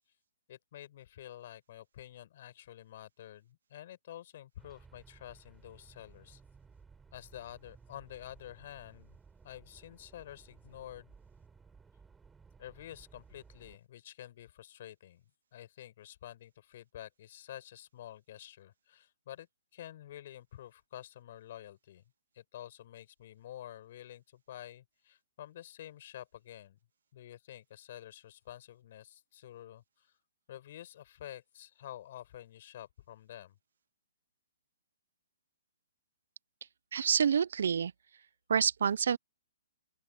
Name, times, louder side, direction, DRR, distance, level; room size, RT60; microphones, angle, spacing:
voice 1, 0.5-6.4 7.1-9.2 9.4-11.1 12.6-15.2 15.5-19.5 19.7-22.0 22.3-26.8 27.1-30.2 30.5-33.6, left 12 dB, 50° left, 6.5 m, -49 dB
sound 1, 4.6-13.8, right 5 dB, 10° right, 7.1 m, -59 dB
voice 2, 36.9-37.9 38.5-39.2, right 7 dB, 70° right, 0.4 m, -27 dB
open air
hypercardioid pair, 155°, 0 cm